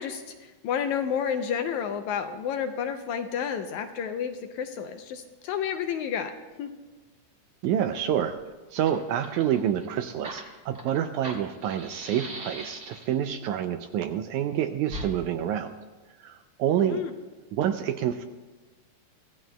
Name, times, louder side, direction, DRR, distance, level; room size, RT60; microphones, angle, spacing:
voice 1, 0.0-6.3 6.6-6.7 16.8-17.1, left 8 dB, 75° left, 7 dB, 1.8 m, -30 dB
voice 2, 7.6-8.4 8.7-15.7 16.2-17.0 17.5-18.2, right 10 dB, 80° right, 8 dB, 1.8 m, -27 dB
Fire, 8.4-8.5 8.7-13.2 14.9-15.1, right 1 dB, 40° right, 1.6 m, -40 dB
24.5 x 15.5 x 2.2 m, 1.2 s
omnidirectional pair, 3.8 m